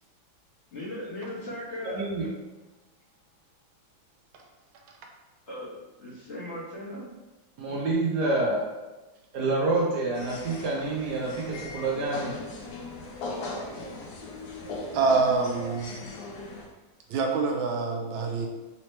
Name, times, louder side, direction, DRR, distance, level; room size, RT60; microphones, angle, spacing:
voice 1, 0.7-2.3 5.5-5.7 6.0-7.1, left 1 dB, 40° left, -10 dB, 1.3 m, -37 dB
voice 2, 1.8-2.3 7.6-8.7 9.3-12.4, right 2 dB, 65° right, -4 dB, 1.1 m, -27 dB
sound 1, 10.1-16.7, left 2 dB, 70° left, 1.1 m, -39 dB
voice 3, 14.9-16.1 17.1-18.5, right 4 dB, 85° right, 1 dB, 1.4 m, -26 dB
4.1 x 2.9 x 3.1 m, 1.1 s
omnidirectional pair, 2.2 m